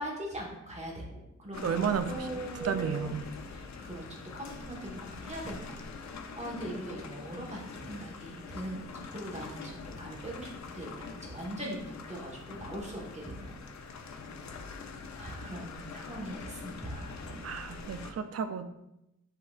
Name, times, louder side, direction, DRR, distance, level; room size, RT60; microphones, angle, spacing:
voice 1, 0.0-3.1 3.5-5.8 6.1-13.6 13.9-14.8 15.1-17.5, right 1 dB, 20° right, -3 dB, 1.3 m, -41 dB
sound 1, 1.5-18.1, left 4 dB, 70° left, 0.5 m, -44 dB
voice 2, 1.6-2.3 2.6-3.2 17.4-18.7, right 7 dB, 55° right, 9 dB, 0.4 m, -32 dB
5.6 x 3.8 x 2.4 m, 0.86 s
wide cardioid pair, 100°, 29 cm